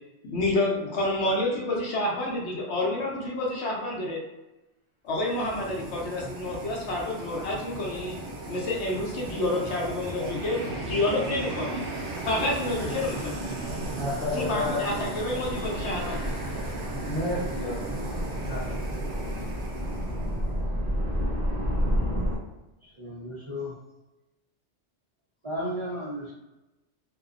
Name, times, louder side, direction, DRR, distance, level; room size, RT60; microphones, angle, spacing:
voice 1, 0.2-4.2 5.0-8.2 8.4-11.8 12.2-13.7 14.3-16.3, left 2 dB, 75° left, -2 dB, 0.9 m, -29 dB
sound 1, 5.1-20.5, right 2 dB, 80° right, 0.9 m, -37 dB
sound 2, 7.1-7.3 7.9-22.4, equal, 10° right, 1.0 m, -33 dB
voice 2, 13.9-14.8 17.0-17.8 18.4-19.0, left 2 dB, 35° left, -5 dB, 0.9 m, -32 dB
voice 3, 22.8-23.7 25.4-26.3, equal, 40° right, -8 dB, 0.5 m, -34 dB
2.7 x 2.0 x 2.4 m, 0.99 s
omnidirectional pair, 1.2 m